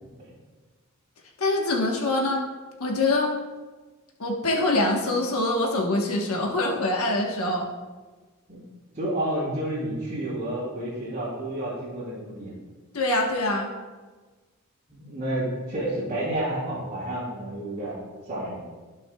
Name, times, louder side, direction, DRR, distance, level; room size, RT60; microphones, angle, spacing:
voice 1, 1.4-2.4 2.8-3.3 4.2-7.7 12.9-13.7, left 2 dB, 85° left, 0 dB, 1.2 m, -24 dB
voice 2, 8.5-12.5 14.9-18.6, right 1 dB, 35° right, -10 dB, 2.8 m, -30 dB
14.5 x 6.3 x 2.3 m, 1.3 s
head